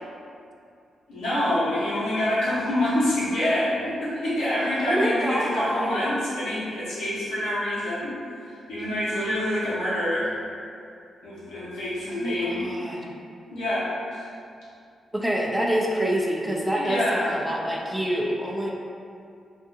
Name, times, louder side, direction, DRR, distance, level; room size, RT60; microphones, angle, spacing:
voice 1, 1.1-8.1 8.5-10.3 11.2-12.6 13.5-14.3 16.7-17.3, left 1 dB, 85° left, -10 dB, 0.8 m, -26 dB
voice 2, 4.8-6.0 12.1-13.0 15.1-18.7, equal, 5° right, -3 dB, 0.5 m, -26 dB
2.6 x 2.3 x 2.6 m, 2.4 s
supercardioid pair, 50°, 0 cm